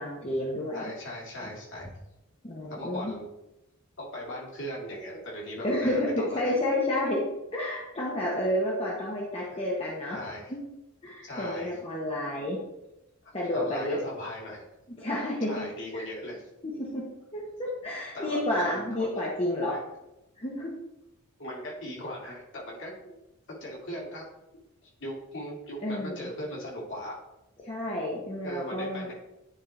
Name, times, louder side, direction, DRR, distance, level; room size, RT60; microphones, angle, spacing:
voice 1, 0.0-0.9 2.4-3.1 5.6-7.2 7.5-10.2 10.5-10.6 11.0-12.6 13.3-14.0 14.9-15.7 15.9-16.0 16.6-19.8 20.4-20.8 25.8-26.3 27.6-29.1, left 1 dB, 25° left, -4 dB, 1.1 m, -30 dB
voice 2, 0.7-1.9 2.7-3.3 4.0-6.4 9.5-9.6 10.1-10.5 11.2-11.8 13.5-14.7 15.5-16.4 18.1-19.1 19.7-19.8 21.4-23.1 23.6-24.2 25.0-27.2 28.4-29.1, equal, 55° left, -4 dB, 2.3 m, -38 dB
9.9 x 4.3 x 3.3 m, 0.91 s
head